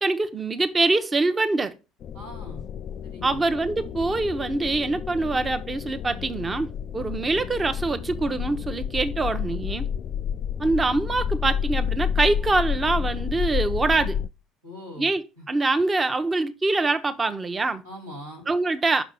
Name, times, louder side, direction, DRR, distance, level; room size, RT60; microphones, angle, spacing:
voice 1, 0.0-1.7 3.2-9.9 10.6-14.2 15.0-15.2 15.5-17.8 18.5-19.0, right 3 dB, 25° right, 0.8 m, -24 dB
sound 1, 2.0-14.3, left 8 dB, 50° left, 0.3 m, -30 dB
voice 2, 2.1-2.6 3.0-3.5 14.6-15.1 15.4-15.5 17.8-18.4, left 1 dB, 90° right, 3.3 m, -41 dB
6.1 x 5.0 x 5.9 m
figure-of-eight pair, 60°, 0 cm